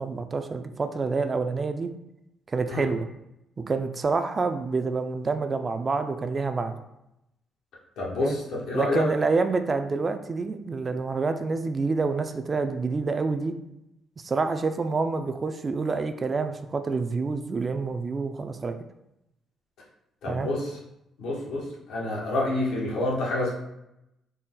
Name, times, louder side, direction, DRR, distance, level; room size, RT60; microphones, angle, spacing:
voice 1, 0.0-1.9 2.5-3.1 3.7-6.8 8.2-8.4 8.7-13.5 14.2-18.7 20.3-20.5, right 4 dB, 35° right, 8 dB, 0.3 m, -27 dB
voice 2, 8.0-8.4 8.7-9.0 20.2-20.7 21.2-23.5, left 2 dB, 85° left, -4 dB, 1.2 m, -28 dB
4.1 x 2.2 x 3.8 m, 0.85 s
cardioid pair, 90°, 0 cm